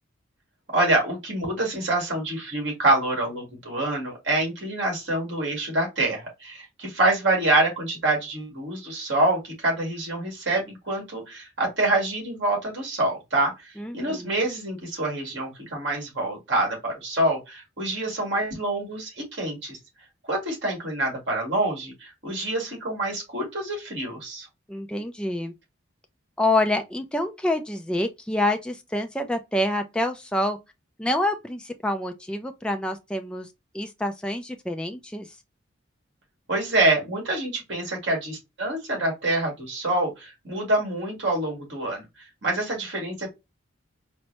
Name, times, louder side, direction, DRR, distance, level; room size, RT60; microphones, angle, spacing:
voice 1, 0.7-19.8 20.3-24.5 36.5-42.0 42.4-43.3, right 2 dB, 65° right, 2.0 m, -26 dB
voice 2, 13.8-14.3 24.7-25.5 26.4-30.6 31.0-33.5 33.7-35.4, left 1 dB, 5° left, 0.3 m, -27 dB
4.2 x 2.1 x 2.7 m
head